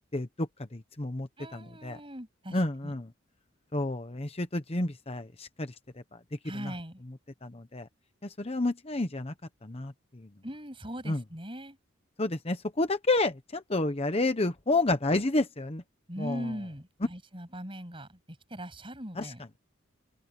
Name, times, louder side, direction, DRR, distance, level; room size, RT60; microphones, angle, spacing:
voice 1, 0.1-2.0 2.5-3.1 3.7-5.7 7.4-7.9 8.4-9.3 9.6-9.9 11.1-11.2 12.2-15.8 16.2-16.4 19.2-19.3, left 2 dB, 30° left, 1.0 m, -30 dB
voice 2, 1.4-2.9 6.4-7.0 10.4-11.8 16.1-19.4, equal, 25° right, 8.0 m, -40 dB
open air
head